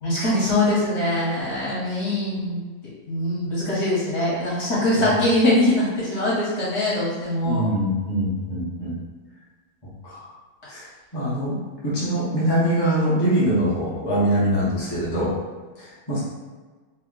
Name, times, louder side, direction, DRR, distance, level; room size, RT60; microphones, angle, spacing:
voice 1, 0.0-2.6 3.1-7.7, left 1 dB, 50° left, -8 dB, 1.3 m, -22 dB
voice 2, 7.4-8.9 10.0-10.3 10.7-11.6 11.8-15.3 15.8-16.2, equal, 20° left, -9 dB, 0.6 m, -23 dB
3.1 x 2.2 x 3.7 m, 1.4 s
omnidirectional pair, 1.6 m